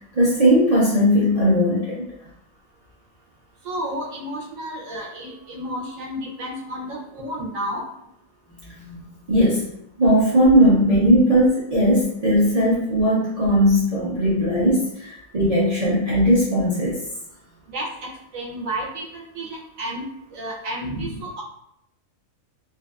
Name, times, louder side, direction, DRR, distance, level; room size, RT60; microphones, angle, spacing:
voice 1, 0.1-2.0 8.8-9.6 10.0-17.0, equal, 40° right, -8 dB, 0.5 m, -18 dB
voice 2, 3.6-7.9 17.7-20.0 20.3-21.4, right 1 dB, 75° right, -2 dB, 1.0 m, -31 dB
2.6 x 2.2 x 2.3 m, 0.76 s
omnidirectional pair, 1.4 m